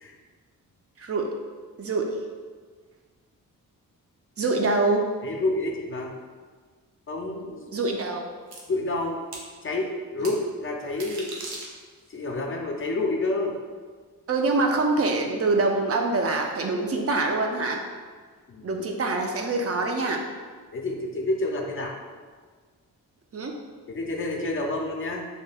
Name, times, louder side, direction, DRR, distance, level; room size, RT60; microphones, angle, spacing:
voice 1, 1.0-1.3 1.8-2.2 4.4-5.1 7.7-8.3 10.2-10.3 14.3-17.8 18.6-20.2 23.3-23.5, right 3 dB, 40° right, 2 dB, 0.4 m, -25 dB
voice 2, 5.2-6.2 7.1-7.8 8.7-9.2 9.6-11.3 12.1-13.6 18.5-18.8 20.7-22.0 23.9-25.3, left 2 dB, 35° left, 1 dB, 0.4 m, -29 dB
sound 1, 8.5-8.6 9.3-9.5 10.2-10.4 10.9-12.1, right 3 dB, 90° right, 0.6 m, -38 dB
2.7 x 2.1 x 3.3 m, 1.5 s
cardioid pair, 60°, 36 cm